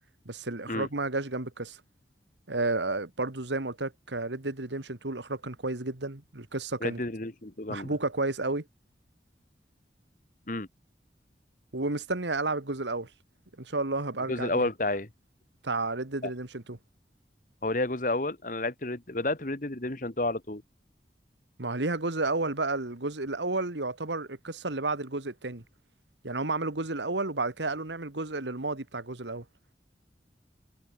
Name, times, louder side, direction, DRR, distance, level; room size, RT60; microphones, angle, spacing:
voice 1, 0.3-1.8 2.5-7.0 7.7-8.6 11.7-13.1 13.6-14.6 15.6-16.8 21.6-25.6 26.2-29.4, right 2 dB, 90° right, 2.0 m, -31 dB
voice 2, 6.8-7.9 10.5-10.7 14.3-15.1 16.2-16.3 17.6-20.6, left 2 dB, 45° left, 1.6 m, -30 dB
head